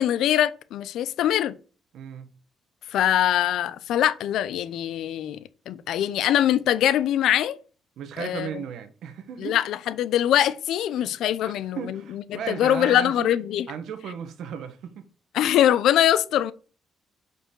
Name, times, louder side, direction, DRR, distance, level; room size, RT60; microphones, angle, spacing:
voice 1, 0.0-1.5 2.9-7.6 8.2-8.5 9.4-13.7 15.3-16.5, left 11 dB, 80° left, 0.6 m, -23 dB
voice 2, 1.9-2.3 8.0-9.6 11.4-13.3 13.7-15.1, right 7 dB, 75° right, 1.2 m, -35 dB
6.6 x 5.4 x 3.8 m
cardioid pair, 90°, 0 cm